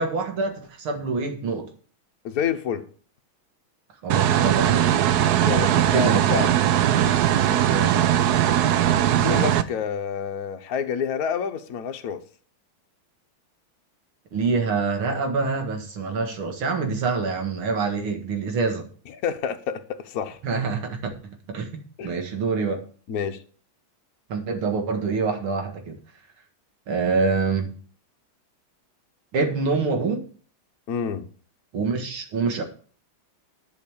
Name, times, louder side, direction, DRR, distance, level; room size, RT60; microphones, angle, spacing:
voice 1, 0.0-1.7 4.0-4.9 5.7-6.2 7.7-8.1 14.3-18.9 20.4-21.7 22.0-22.8 24.3-26.0 26.9-27.7 29.3-30.3 31.7-32.6, right 4 dB, 90° right, 2.6 m, -26 dB
voice 2, 2.2-2.9 5.4-6.5 9.1-12.2 19.2-20.4 22.0-22.2 23.1-23.4 30.9-31.3, left 7 dB, 55° left, 1.2 m, -28 dB
sound 1, 4.1-9.6, right 11 dB, 70° right, 1.0 m, -20 dB
11.0 x 5.7 x 7.1 m
omnidirectional pair, 2.2 m